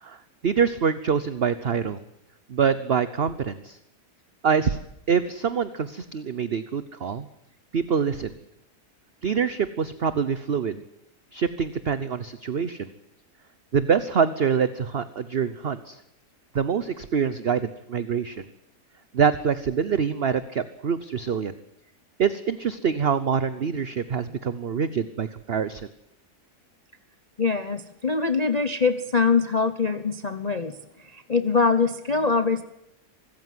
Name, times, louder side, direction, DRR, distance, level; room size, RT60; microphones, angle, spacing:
voice 1, 0.0-2.0 2.5-3.8 4.4-4.8 5.1-7.3 7.7-8.4 9.2-10.8 11.3-12.9 13.7-16.0 16.5-18.4 19.1-21.5 22.2-25.9, right 6 dB, 45° right, 13 dB, 1.0 m, -25 dB
voice 2, 27.4-30.7 31.0-32.6, left 4 dB, 30° left, 10 dB, 0.9 m, -23 dB
25.0 x 14.0 x 9.4 m, 0.80 s
omnidirectional pair, 1.7 m